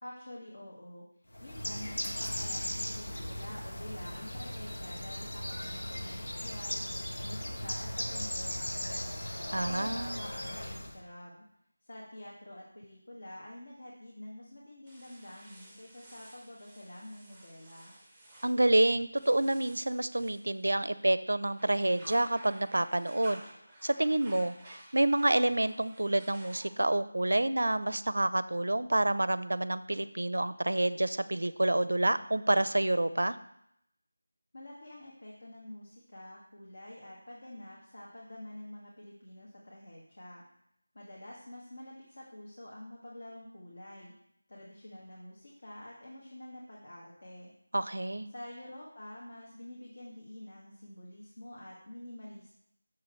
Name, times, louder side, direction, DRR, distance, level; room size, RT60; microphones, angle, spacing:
voice 1, 0.0-1.1 1.4-6.8 7.2-9.2 9.6-11.4 11.8-17.9 34.5-40.4 40.9-44.1 44.5-47.5 48.3-52.5, left 1 dB, 50° left, -4 dB, 1.8 m, -47 dB
Bird, 1.3-11.0, left 1 dB, 75° left, 1.5 m, -37 dB
voice 2, 9.5-10.2 18.4-23.4 23.8-33.4 47.7-48.3, right 1 dB, 80° right, 15 dB, 0.5 m, -28 dB
sound 1, 14.9-21.0 21.4-27.0, right 1 dB, ahead, 0.8 m, -54 dB
6.9 x 6.6 x 4.5 m, 0.74 s
figure-of-eight pair, 175°, 0 cm